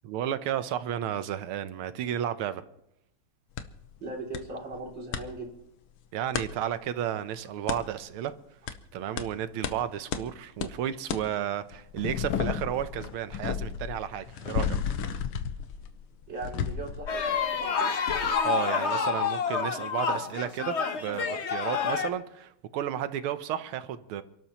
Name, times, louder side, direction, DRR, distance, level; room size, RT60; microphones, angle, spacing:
voice 1, 0.0-2.6 6.1-8.3 8.9-14.9 18.4-24.2, right 10 dB, 80° right, 1.7 m, -32 dB
sound 1, 3.6-3.7 4.3-4.4 4.7-5.2 6.3-6.5 7.7-7.8 8.7-8.8 9.2-9.3 9.6-9.8 10.1-10.2 10.6-10.7 11.1-11.2 11.7-17.7 18.1-18.3, left 8 dB, 85° left, 1.8 m, -33 dB
voice 2, 4.0-5.6 16.3-17.9, right 2 dB, 55° right, 3.7 m, -39 dB
sound 2, 17.1-22.1, left 6 dB, 50° left, 0.8 m, -28 dB
28.0 x 12.5 x 3.0 m
omnidirectional pair, 2.4 m